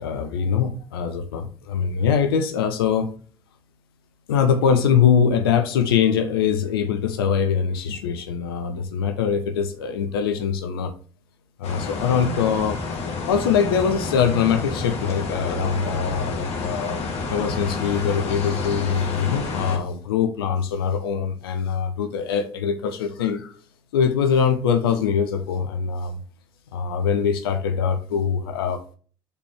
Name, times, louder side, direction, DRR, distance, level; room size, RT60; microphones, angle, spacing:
voice 1, 0.0-3.1 4.3-10.9 11.6-12.8 13.3-23.5 23.9-26.2 26.7-28.8, left 7 dB, 85° left, 7 dB, 0.7 m, -23 dB
sound 1, 11.6-19.8, left 4 dB, 60° left, 1.7 m, -29 dB
5.2 x 4.3 x 4.4 m, 0.40 s
hypercardioid pair, 55°, 12 cm